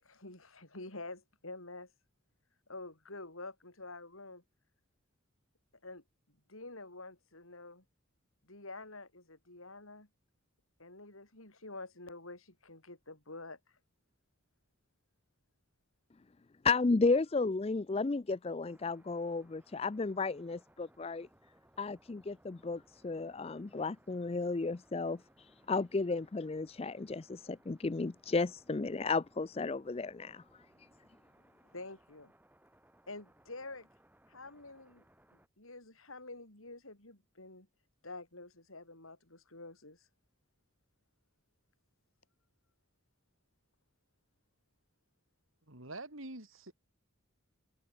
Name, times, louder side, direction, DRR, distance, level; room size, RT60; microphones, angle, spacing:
voice 1, 0.0-1.9 2.7-4.4 5.8-6.0 6.5-7.8 8.4-10.1 10.8-13.6 17.9-18.0 31.7-32.3 33.1-33.9 34.3-35.0 35.6-37.7 38.0-40.1, left 2 dB, 85° left, 7.9 m, -48 dB
voice 2, 16.6-21.3 21.8-30.6, left 3 dB, 30° left, 0.4 m, -33 dB
sound 1, 18.7-35.5, right 1 dB, 10° right, 7.2 m, -66 dB
voice 3, 45.7-46.7, right 2 dB, 80° right, 5.5 m, -46 dB
head